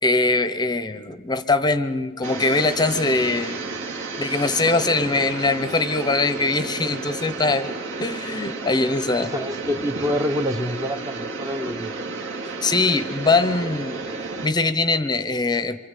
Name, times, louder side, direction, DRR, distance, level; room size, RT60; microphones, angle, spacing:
voice 1, 0.0-3.6 4.2-9.3 12.6-15.8, left 3 dB, 20° left, 12 dB, 0.8 m, -22 dB
sound 1, 2.2-14.5, right 3 dB, 60° right, 2.3 m, -32 dB
voice 2, 9.2-12.2, left 1 dB, 15° right, 8 dB, 0.8 m, -27 dB
27.5 x 24.0 x 8.3 m, 1.5 s
head